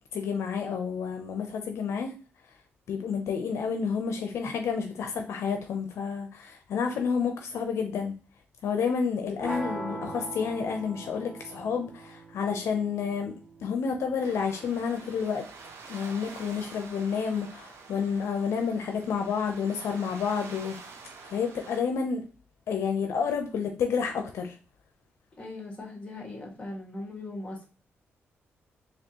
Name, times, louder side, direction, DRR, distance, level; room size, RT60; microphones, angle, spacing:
voice 1, 0.1-2.1 2.9-8.1 8.6-13.3 13.6-15.4 15.9-20.8 21.3-22.2 22.7-24.6, left 6 dB, 80° left, 0.6 m, -30 dB
sound 1, 9.4-15.4, right 1 dB, 10° right, 1.5 m, -41 dB
sound 2, 14.2-21.8, right 4 dB, 75° right, 0.8 m, -47 dB
voice 2, 25.4-27.6, left 2 dB, 25° left, 1.7 m, -39 dB
4.3 x 2.9 x 2.9 m
cardioid pair, 95°, 5 cm